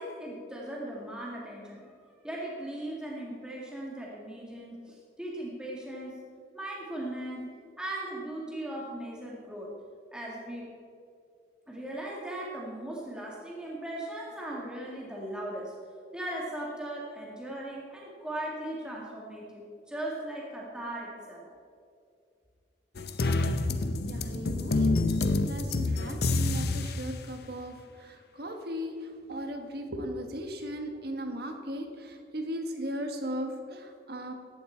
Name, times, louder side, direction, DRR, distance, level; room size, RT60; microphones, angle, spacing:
voice 1, 0.0-1.9 2.2-6.1 6.5-9.7 10.1-10.7 11.7-15.7 16.1-21.5, right 1 dB, 5° right, -4 dB, 2.0 m, -38 dB
sound 1, 23.0-27.0, left 2 dB, 55° left, 0.7 m, -27 dB
voice 2, 24.0-34.3, equal, 55° right, 5 dB, 1.6 m, -37 dB
16.0 x 11.5 x 4.6 m, 2.3 s
head